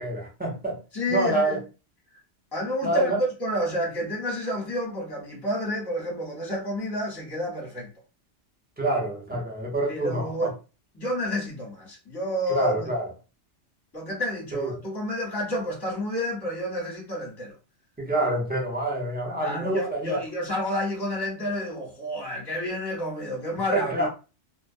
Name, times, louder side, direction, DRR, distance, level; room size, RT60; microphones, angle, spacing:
voice 1, 0.0-0.8 1.1-1.6 2.8-3.2 8.8-10.5 12.5-13.1 14.5-14.8 18.0-20.2 23.7-24.1, right 2 dB, 10° right, 0.6 m, -27 dB
voice 2, 0.9-1.6 2.5-7.9 9.9-10.5 10.9-12.9 13.9-17.6 19.4-24.1, left 1 dB, 20° left, 1.0 m, -30 dB
2.2 x 2.1 x 2.6 m
omnidirectional pair, 1.2 m